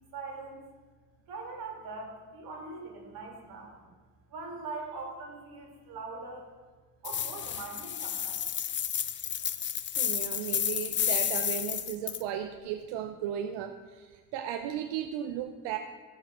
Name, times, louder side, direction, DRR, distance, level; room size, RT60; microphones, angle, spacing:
voice 1, 0.1-0.6 1.3-3.8 4.3-6.5 7.0-8.4, right 3 dB, 60° right, 1 dB, 3.1 m, -42 dB
sound 1, 7.0-12.2, left 9 dB, 30° left, 0.5 m, -31 dB
voice 2, 10.0-15.8, right 10 dB, 90° right, 7 dB, 0.7 m, -35 dB
15.0 x 5.7 x 6.0 m, 1.5 s
cardioid pair, 140°, 41 cm